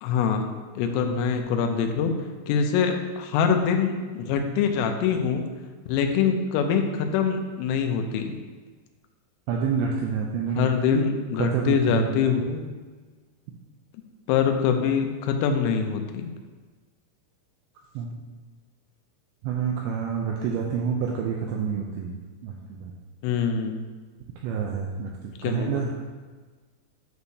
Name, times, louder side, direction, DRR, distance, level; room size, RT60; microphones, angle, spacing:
voice 1, 0.0-0.5 0.8-2.1 2.5-5.5 5.9-8.4 10.6-12.7 14.3-16.3 23.2-23.8 25.4-25.8, left 6 dB, 85° left, 5 dB, 3.3 m, -24 dB
voice 2, 9.5-11.0 11.4-12.1 18.0-18.1 19.4-22.9 24.4-25.9, right 6 dB, 90° right, -1 dB, 2.5 m, -28 dB
9.5 x 6.3 x 2.8 m, 1.4 s
omnidirectional pair, 5.7 m